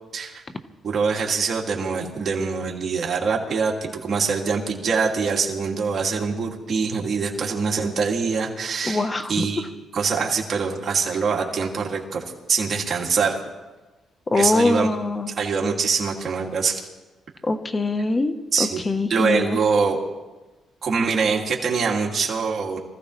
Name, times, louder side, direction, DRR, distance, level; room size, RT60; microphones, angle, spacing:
voice 1, 0.8-9.7 9.9-13.4 14.3-14.9 15.4-16.9 18.5-18.8 19.1-20.0 20.8-22.8, right 5 dB, 45° right, -1 dB, 2.6 m, -24 dB
voice 2, 8.8-9.5 14.3-15.3 17.4-19.6, left 2 dB, 25° left, 9 dB, 1.1 m, -23 dB
24.5 x 15.0 x 3.3 m, 1.2 s
cardioid pair, 90°, 0 cm